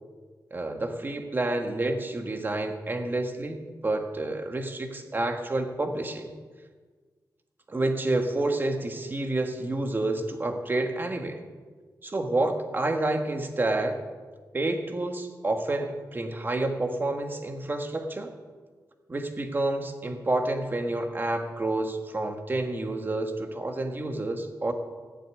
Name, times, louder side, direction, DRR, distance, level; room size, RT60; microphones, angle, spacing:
voice 1, 0.5-6.3 7.7-11.4 12.0-14.0 14.5-18.3 19.1-24.7, right 2 dB, 30° right, 5 dB, 1.4 m, -29 dB
15.5 x 7.0 x 9.4 m, 1.5 s
wide cardioid pair, 160°, 7 cm